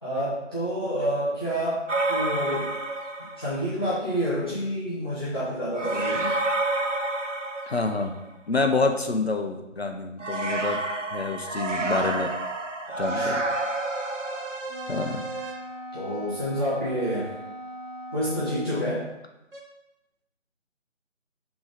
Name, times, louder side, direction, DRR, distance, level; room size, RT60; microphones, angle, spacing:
voice 1, 0.0-2.7 3.4-6.3 12.9-13.3 15.9-17.3 18.1-19.1, equal, 20° left, -12 dB, 1.0 m, -28 dB
sound 1, 1.9-3.6 5.7-8.3 10.2-14.6, right 2 dB, 75° right, 0.9 m, -29 dB
voice 2, 7.7-8.2 8.5-10.8 11.1-12.3 13.0-13.4 14.9-15.2, left 3 dB, 55° left, 5 dB, 0.7 m, -27 dB
sound 2, 13.5-15.6 19.5-19.6, right 3 dB, 50° right, 1.1 m, -37 dB
Wind instrument woodwind instrument, 14.7-19.0, equal, 40° left, 1.7 m, -40 dB
6.0 x 3.8 x 4.9 m, 0.95 s
figure-of-eight pair, 160°, 37 cm